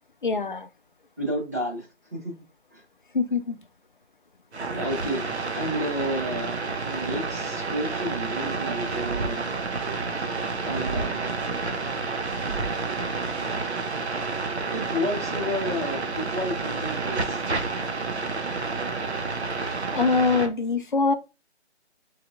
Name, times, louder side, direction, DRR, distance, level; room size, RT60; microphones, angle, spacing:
voice 1, 0.2-0.7 3.1-3.6 19.9-21.1, left 4 dB, 45° left, 0.5 m, -23 dB
voice 2, 1.2-2.3 2.7-2.8 4.7-5.2 5.5-9.5 10.2-11.3 12.1-12.2 14.7-17.4, equal, 15° right, 0.9 m, -31 dB
sound 1, 4.5-20.5, right 4 dB, 70° right, 0.9 m, -30 dB
sound 2, 8.8-14.2, right 2 dB, 50° right, 0.4 m, -37 dB
4.7 x 3.3 x 2.5 m
figure-of-eight pair, 160°, 35 cm